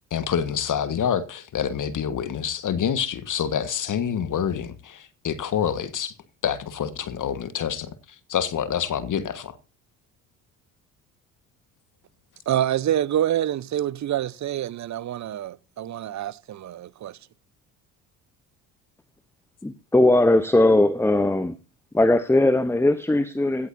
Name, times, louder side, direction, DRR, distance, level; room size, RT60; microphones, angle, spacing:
voice 1, 0.1-6.1 6.4-9.6, left 8 dB, 45° left, 1.5 m, -27 dB
voice 2, 12.5-17.2, right 11 dB, 40° right, 0.8 m, -26 dB
voice 3, 19.6-21.6 21.9-23.7, left 2 dB, 5° left, 0.9 m, -19 dB
16.5 x 13.0 x 2.7 m
hypercardioid pair, 55°, 42 cm